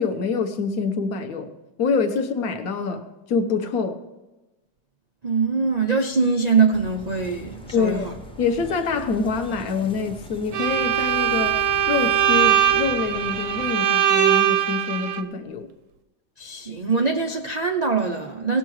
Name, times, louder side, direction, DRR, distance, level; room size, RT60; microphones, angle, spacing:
voice 1, 0.0-1.5 1.8-4.0 7.7-8.1 8.4-11.6 11.9-15.7, left 5 dB, 55° left, 7 dB, 1.4 m, -25 dB
voice 2, 5.2-8.1 16.4-18.6, right 4 dB, 80° right, 3 dB, 0.3 m, -23 dB
sound 1, 6.7-13.7, right 1 dB, 5° left, 0.4 m, -42 dB
Bowed string instrument, 10.5-15.2, right 10 dB, 55° right, 0.9 m, -21 dB
18.5 x 6.8 x 4.8 m, 1.1 s
omnidirectional pair, 1.9 m